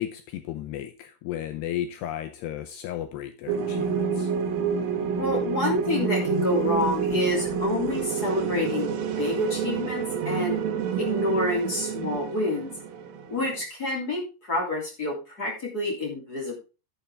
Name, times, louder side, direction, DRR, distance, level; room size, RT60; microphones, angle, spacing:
voice 1, 0.0-4.3, left 11 dB, 85° left, 8 dB, 2.4 m, -34 dB
sound 1, 3.5-13.6, right 6 dB, 65° right, 2.5 m, -28 dB
voice 2, 5.2-8.9 9.2-10.6 11.0-12.7 13.3-16.6, left 2 dB, 25° left, -1 dB, 2.5 m, -28 dB
sound 2, 6.2-8.8 10.2-12.7, right 8 dB, 90° right, 1.6 m, -37 dB
10.5 x 9.0 x 3.4 m, 0.31 s
omnidirectional pair, 5.7 m